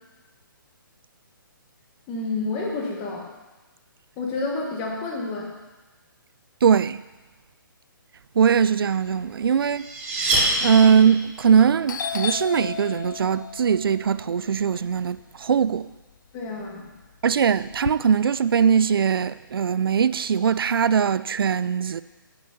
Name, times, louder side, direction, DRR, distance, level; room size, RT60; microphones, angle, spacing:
voice 1, 2.1-3.3 4.2-5.5 16.3-16.9, left 3 dB, 15° left, 1.0 m, -29 dB
voice 2, 6.6-7.0 8.4-9.9 10.6-15.9 17.2-22.0, right 7 dB, 90° right, 0.4 m, -20 dB
sound 1, 9.2-11.3, right 2 dB, 10° right, 0.9 m, -25 dB
Doorbell, 11.3-11.6 11.9-16.0 16.4-17.9, left 6 dB, 60° left, 0.4 m, -34 dB
9.7 x 5.4 x 6.9 m
hypercardioid pair, 175°, 12 cm